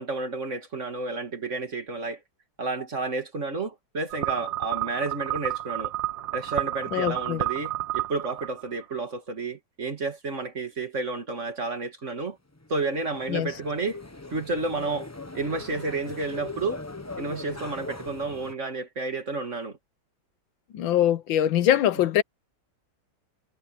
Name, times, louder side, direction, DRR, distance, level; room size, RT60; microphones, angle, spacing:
voice 1, 0.0-2.2 2.6-5.9 6.3-12.4 12.7-14.0 14.3-16.8 17.2-19.8, right 3 dB, 40° right, 2.4 m, -31 dB
sound 1, 4.1-8.8, right 13 dB, 75° right, 2.0 m, -31 dB
voice 2, 6.9-7.4 13.3-13.5 20.7-22.2, left 11 dB, 80° left, 1.6 m, -23 dB
sound 2, 12.6-18.5, left 2 dB, 15° left, 0.7 m, -40 dB
omnidirectional pair, 2.1 m